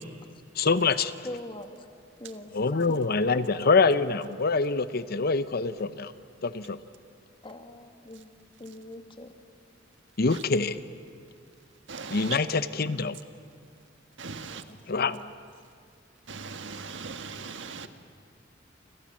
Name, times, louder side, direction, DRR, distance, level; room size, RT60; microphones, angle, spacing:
voice 1, 0.6-1.1 2.5-6.1 6.4-6.8 10.2-10.8 12.1-13.2 14.9-15.2, left 4 dB, 55° left, 0.8 m, -25 dB
voice 2, 1.2-1.9 2.2-2.5 7.4-8.3 8.6-9.3 12.8-13.0 14.7-14.8 15.1-15.3, left 1 dB, 25° left, 1.9 m, -43 dB
voice 3, 11.9-12.4 14.2-14.6 16.3-17.9, right 5 dB, 70° right, 1.6 m, -39 dB
29.0 x 26.0 x 7.5 m
head